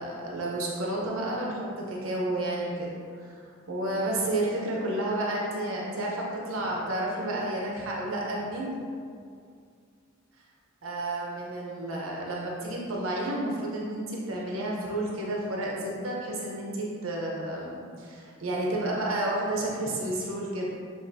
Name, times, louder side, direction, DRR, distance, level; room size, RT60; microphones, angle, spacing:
voice 1, 0.0-3.4 3.7-8.8 10.8-20.6, right 1 dB, 90° right, -3 dB, 0.9 m, -31 dB
7.1 x 2.6 x 2.7 m, 2.3 s
head